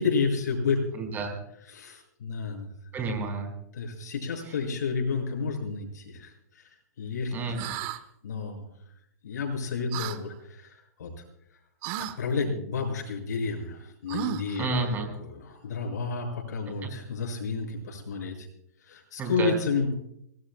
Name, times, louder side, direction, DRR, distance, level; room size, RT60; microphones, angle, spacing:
voice 1, 0.0-0.8 1.7-2.7 3.7-6.3 7.0-7.3 8.2-8.6 9.2-11.1 12.0-14.7 15.2-18.5 18.9-19.9, left 4 dB, 75° left, 2 dB, 6.4 m, -30 dB
voice 2, 0.9-1.4 2.9-3.6 4.4-4.5 7.3-7.7 14.6-15.1 16.8-16.9 19.2-19.5, right 3 dB, 20° right, 3 dB, 4.6 m, -30 dB
sound 1, 7.6-8.0 9.9-10.2 11.8-12.2 14.1-14.6, right 12 dB, 40° right, 1.0 m, -33 dB
25.5 x 19.0 x 2.2 m, 0.75 s
hypercardioid pair, 145°, 9 cm